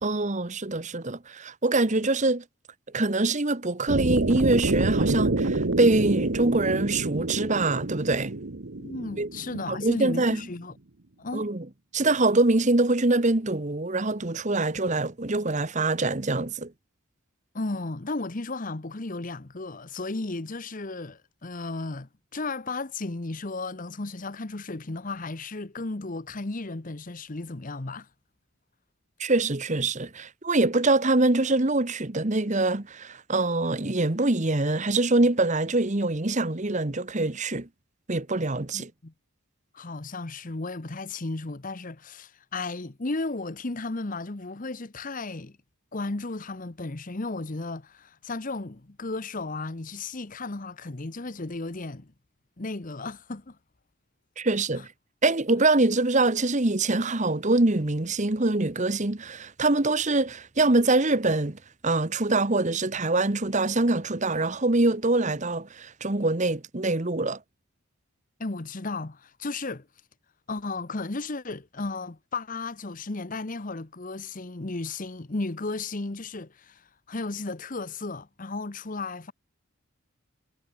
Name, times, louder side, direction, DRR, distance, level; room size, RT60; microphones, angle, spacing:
voice 1, 0.0-2.4 2.9-8.4 9.2-9.3 9.7-10.4 11.3-11.7 11.9-16.7 29.2-37.7 38.1-38.9 54.4-54.9 55.2-67.4, right 2 dB, 35° right, 1.2 m, -24 dB
sound 1, 3.9-10.0, right 2 dB, 55° right, 1.1 m, -27 dB
voice 2, 8.8-10.7 11.2-11.5 17.5-28.1 38.7-39.1 39.7-45.6 45.9-52.1 52.6-53.6 54.8-54.9 68.4-69.9 70.5-79.3, left 3 dB, 35° left, 1.0 m, -34 dB
head